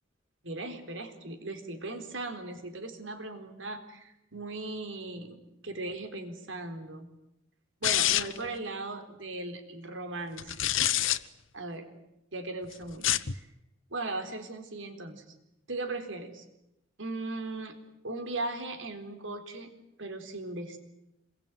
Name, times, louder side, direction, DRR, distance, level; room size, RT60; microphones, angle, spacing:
voice 1, 0.4-7.1 7.8-10.6 11.5-11.9 12.3-13.5 13.9-15.2 15.7-16.5 17.0-17.8 18.0-19.7 20.0-20.8, right 2 dB, 75° right, 7 dB, 4.1 m, -38 dB
sound 1, 7.8-8.5 10.4-11.2 12.9-13.3, left 12 dB, 85° left, 1.0 m, -26 dB
27.0 x 22.5 x 9.3 m, 0.87 s
head